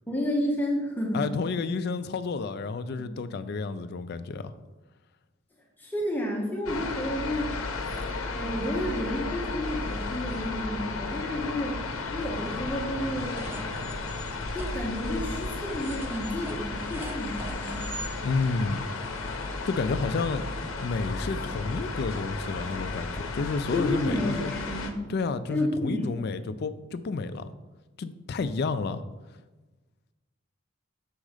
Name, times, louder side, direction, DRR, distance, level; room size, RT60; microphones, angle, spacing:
voice 1, 0.1-1.2 5.8-7.5 8.3-11.8 12.1-13.4 14.5-17.9 23.7-25.0 25.5-26.4, left 1 dB, 10° left, 0.8 m, -31 dB
voice 2, 1.1-4.5 18.2-18.8 19.6-20.4 20.8-24.5 25.1-27.5 28.0-29.0, left 4 dB, 50° left, 0.3 m, -30 dB
sound 1, 6.7-24.9, left 3 dB, 75° left, 0.7 m, -34 dB
sound 2, 13.2-18.1, right 1 dB, 10° right, 0.5 m, -41 dB
6.3 x 3.7 x 4.9 m
head